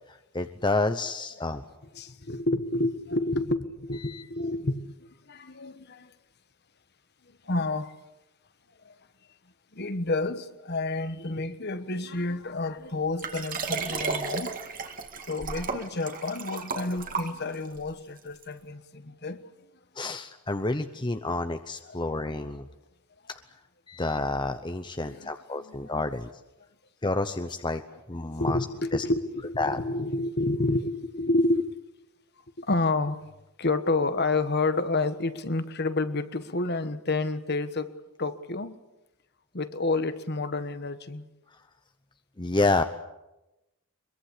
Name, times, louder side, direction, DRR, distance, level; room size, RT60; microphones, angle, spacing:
voice 1, 0.1-1.6 4.0-4.2 13.9-14.2 20.0-22.7 23.9-26.3 27.0-27.8 28.1-28.6 28.9-29.0 29.6-29.8 42.4-42.8, left 2 dB, 20° left, 0.8 m, -29 dB
voice 2, 1.9-6.1 7.4-8.0 8.8-9.0 9.7-14.6 15.2-19.4 21.9-22.0 25.0-25.9 28.4-31.7 32.6-33.2 33.6-37.9 38.2-38.8 39.5-41.2, left 2 dB, 45° left, 1.4 m, -29 dB
Liquid, 13.2-17.8 18.4-18.5, right 4 dB, 40° right, 2.2 m, -33 dB
23.5 x 22.5 x 8.5 m
head